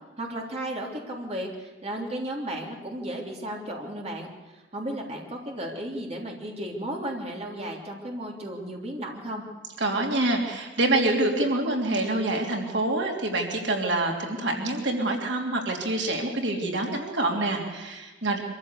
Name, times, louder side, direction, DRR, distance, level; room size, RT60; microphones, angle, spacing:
voice 1, 0.2-9.4, right 1 dB, 35° right, 0 dB, 3.3 m, -34 dB
voice 2, 9.8-18.4, right 2 dB, 85° right, 1 dB, 3.1 m, -26 dB
24.5 x 14.5 x 8.3 m, 1.2 s
head